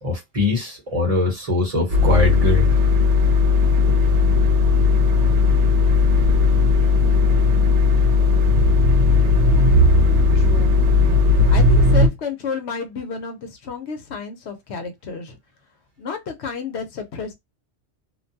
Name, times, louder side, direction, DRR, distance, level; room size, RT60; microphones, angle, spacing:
voice 1, 0.0-2.7, left 3 dB, 35° right, 0.9 m, -22 dB
sound 1, 1.9-12.1, left 3 dB, 80° right, 1.0 m, -16 dB
voice 2, 10.3-10.8 11.5-15.4 16.0-17.3, left 5 dB, 70° left, 0.9 m, -31 dB
2.5 x 2.2 x 2.6 m
omnidirectional pair, 1.2 m